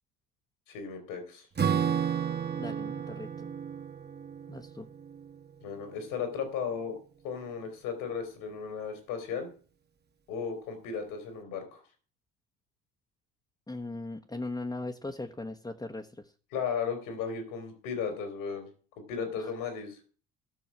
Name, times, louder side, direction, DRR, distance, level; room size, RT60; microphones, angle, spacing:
voice 1, 0.7-1.5 5.6-7.0 7.2-9.5 10.3-11.8 16.5-18.7 19.1-20.0, left 6 dB, 75° left, 6 dB, 3.5 m, -35 dB
Acoustic guitar / Strum, 1.6-6.4, right 8 dB, 30° right, 1.7 m, -33 dB
voice 2, 2.6-3.5 4.5-4.9 13.7-16.3 19.4-19.5, left 2 dB, 10° left, 3 dB, 1.2 m, -39 dB
15.5 x 6.3 x 6.1 m, 0.40 s
hypercardioid pair, 65°, 35 cm